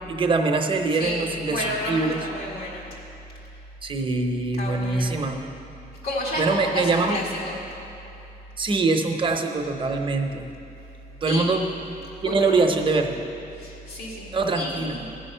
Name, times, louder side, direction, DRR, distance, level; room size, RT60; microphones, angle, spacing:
voice 1, 0.1-2.2 3.8-5.4 6.4-7.2 8.6-10.4 11.2-11.6 12.2-13.2 14.3-15.0, right 3 dB, 30° right, 4 dB, 0.8 m, -23 dB
voice 2, 1.0-2.9 4.6-5.2 6.0-7.6 11.3-11.5 12.3-12.5 13.6-15.1, left 1 dB, 90° left, -4 dB, 1.9 m, -31 dB
15.0 x 6.4 x 5.5 m, 2.9 s
cardioid pair, 145°, 16 cm